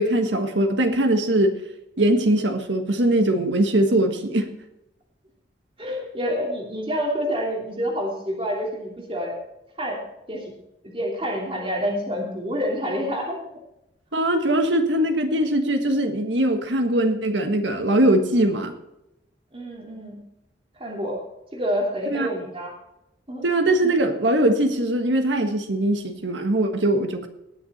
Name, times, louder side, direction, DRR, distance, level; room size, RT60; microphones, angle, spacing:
voice 1, 0.0-1.6 2.0-4.5 14.1-18.7 22.1-22.3 23.4-27.3, right 1 dB, 85° right, 6 dB, 1.6 m, -21 dB
voice 2, 5.8-9.4 9.8-10.0 10.3-10.5 10.9-13.4 19.5-20.2 20.8-21.2 21.5-22.7 23.3-23.4, equal, 30° right, -1 dB, 2.9 m, -27 dB
19.5 x 7.0 x 4.2 m, 0.88 s
head